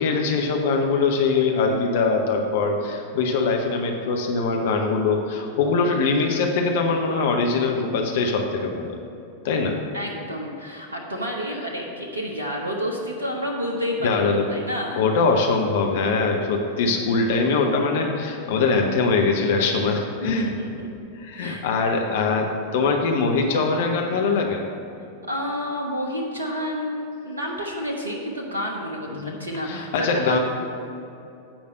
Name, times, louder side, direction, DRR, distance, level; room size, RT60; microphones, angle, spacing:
voice 1, 0.0-9.0 9.4-9.8 14.0-14.5 15.0-20.5 21.2-24.6 29.1-29.4 29.6-30.4, left 4 dB, 55° left, 2 dB, 0.8 m, -22 dB
voice 2, 9.9-15.0 20.2-20.9 21.3-21.6 22.7-22.9 25.3-30.4, equal, 75° right, 0 dB, 0.9 m, -30 dB
8.8 x 5.1 x 6.4 m, 2.7 s
figure-of-eight pair, 90°, 0 cm